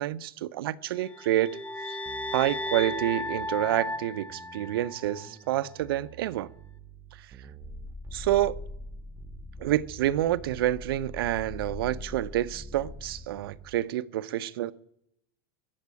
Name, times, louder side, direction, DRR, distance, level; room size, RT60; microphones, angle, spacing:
voice 1, 0.0-1.6 2.3-6.5 7.1-7.3 8.1-8.6 9.6-14.7, right 13 dB, 80° right, 0.6 m, -28 dB
sound 1, 1.0-5.3, left 2 dB, 10° left, 0.7 m, -35 dB
sound 2, 2.1-13.9, right 9 dB, 25° right, 1.0 m, -51 dB
sound 3, 7.6-13.3, left 2 dB, 30° left, 2.8 m, -42 dB
20.5 x 7.3 x 8.4 m
supercardioid pair, 125°, 12 cm